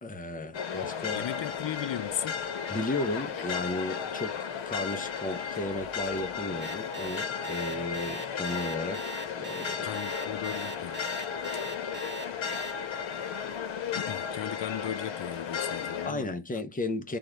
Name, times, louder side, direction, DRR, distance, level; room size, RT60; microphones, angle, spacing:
voice 1, 0.0-1.3 2.7-9.9 10.2-10.3 16.0-17.2, left 2 dB, 20° left, 0.8 m, -34 dB
sound 1, 0.5-16.1, left 7 dB, 85° left, 1.2 m, -34 dB
voice 2, 1.1-2.5 9.8-11.1 13.9-16.3, left 10 dB, 65° left, 0.8 m, -36 dB
Alarm, 6.6-12.7, right 2 dB, 25° right, 1.0 m, -40 dB
3.8 x 3.1 x 3.0 m
wide cardioid pair, 145°, 46 cm